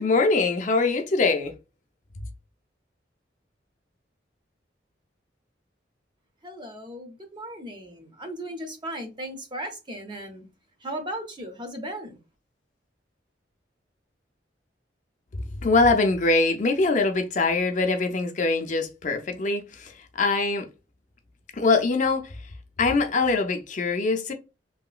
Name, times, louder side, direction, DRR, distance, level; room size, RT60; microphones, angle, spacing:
voice 1, 0.0-1.5 15.6-20.7 21.6-22.3 22.8-24.3, left 3 dB, 40° left, 0.5 m, -23 dB
voice 2, 6.4-10.5 10.8-12.2, right 1 dB, 25° right, 0.6 m, -36 dB
3.1 x 2.9 x 2.3 m
head